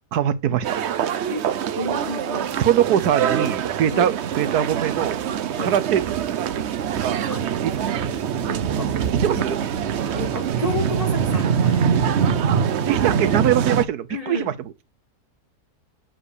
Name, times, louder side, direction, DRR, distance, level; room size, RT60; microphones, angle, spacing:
voice 1, 0.1-0.7 2.6-5.2 5.6-7.3 7.6-8.1 9.2-9.6 12.9-14.8, right 10 dB, 75° right, 1.3 m, -23 dB
sound 1, 0.6-13.8, right 8 dB, 60° right, 0.8 m, -24 dB
voice 2, 1.7-2.6 3.9-4.1 5.6-5.7 7.3-7.8 8.5-8.9 9.3-9.4 10.1-11.9 14.1-14.5, left 3 dB, 25° left, 1.1 m, -32 dB
7.8 x 5.1 x 6.6 m
omnidirectional pair, 1.7 m